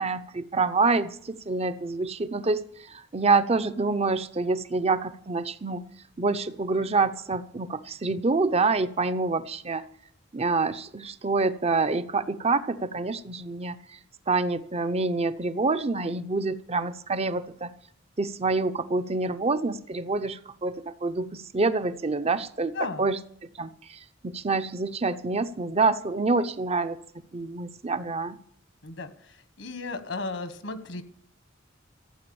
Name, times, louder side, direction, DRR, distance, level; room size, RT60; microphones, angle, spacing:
voice 1, 0.0-5.8 6.2-9.8 10.3-14.0 14.3-17.7 18.2-23.2 23.6-27.0 27.3-28.4, right 3 dB, 35° right, 0.7 m, -27 dB
voice 2, 29.6-31.0, left 3 dB, 80° left, 1.4 m, -34 dB
15.0 x 9.1 x 7.1 m
head